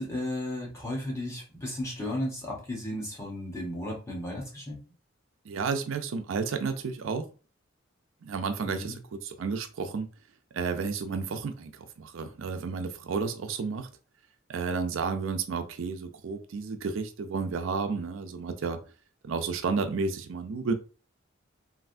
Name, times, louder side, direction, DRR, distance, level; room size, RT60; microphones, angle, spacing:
voice 1, 0.0-4.8 8.6-9.0, left 1 dB, 15° left, -3 dB, 1.0 m, -34 dB
voice 2, 5.4-7.3 8.2-10.1 10.5-13.9 14.5-18.8 19.2-20.7, right 4 dB, 75° right, 7 dB, 0.4 m, -32 dB
3.2 x 2.6 x 2.5 m, 0.35 s
head